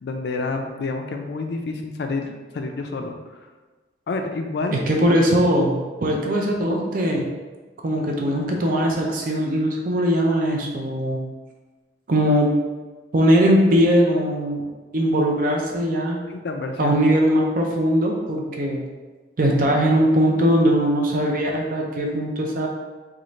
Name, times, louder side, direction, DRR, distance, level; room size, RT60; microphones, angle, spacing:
voice 1, 0.0-3.1 4.1-4.8 16.3-17.0, left 3 dB, 60° left, 4 dB, 0.3 m, -28 dB
voice 2, 4.7-7.3 7.8-11.2 12.1-12.5 13.1-14.6 14.9-16.2 16.8-18.8 19.4-22.7, equal, 50° right, 0 dB, 0.4 m, -20 dB
3.1 x 2.3 x 3.9 m, 1.3 s
head